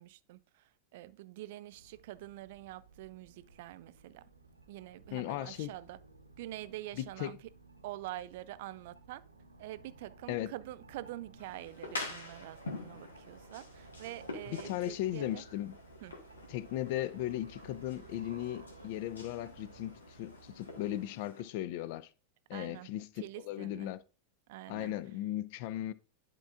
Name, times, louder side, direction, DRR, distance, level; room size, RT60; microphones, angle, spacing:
voice 1, 0.0-4.2 4.7-6.0 6.4-7.4 7.8-9.2 9.6-15.4 16.0-16.2 22.5-22.9 23.2-23.9 24.5-24.9, right 15 dB, 50° right, 0.4 m, -46 dB
sound 1, 1.7-21.1, right 4 dB, 80° right, 0.8 m, -57 dB
voice 2, 5.1-5.7 7.0-7.4 10.3-10.5 14.5-15.8 16.5-22.1 22.5-24.0 24.7-25.9, left 13 dB, 50° left, 0.5 m, -37 dB
sound 2, 11.4-21.4, left 2 dB, 70° left, 1.7 m, -47 dB
10.5 x 4.4 x 2.5 m
figure-of-eight pair, 90°, 0 cm